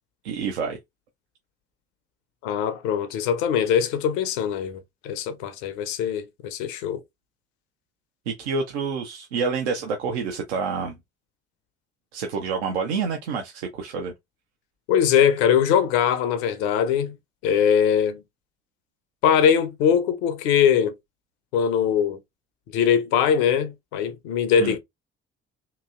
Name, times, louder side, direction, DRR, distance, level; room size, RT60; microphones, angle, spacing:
voice 1, 0.2-0.8 8.3-11.0 12.1-14.1 24.6-24.8, right 5 dB, 75° right, 0.6 m, -28 dB
voice 2, 2.4-7.0 14.9-17.1 17.4-18.2 19.2-20.9 21.5-22.2 22.7-24.8, left 8 dB, 65° left, 0.6 m, -21 dB
2.9 x 2.7 x 2.3 m
figure-of-eight pair, 45°, 33 cm